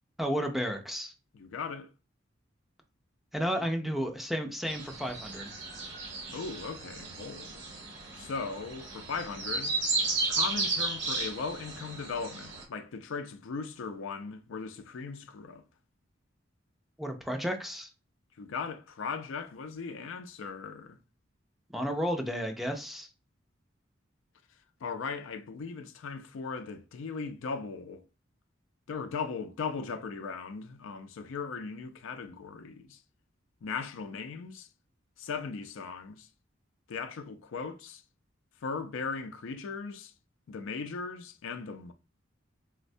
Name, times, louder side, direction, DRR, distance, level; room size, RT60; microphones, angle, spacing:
voice 1, 0.2-1.1 3.3-5.5 17.0-17.9 21.7-23.1, equal, ahead, 0.4 m, -32 dB
voice 2, 1.3-1.9 6.3-7.6 8.2-9.7 10.3-15.6 18.4-21.0 24.8-28.0 28.9-33.0 33.6-34.7 35.2-36.3 36.9-38.0 38.6-40.1 40.5-41.9, left 5 dB, 90° left, 0.4 m, -38 dB
sound 1, 4.7-12.6, right 3 dB, 70° right, 0.8 m, -34 dB
4.1 x 2.1 x 2.6 m
head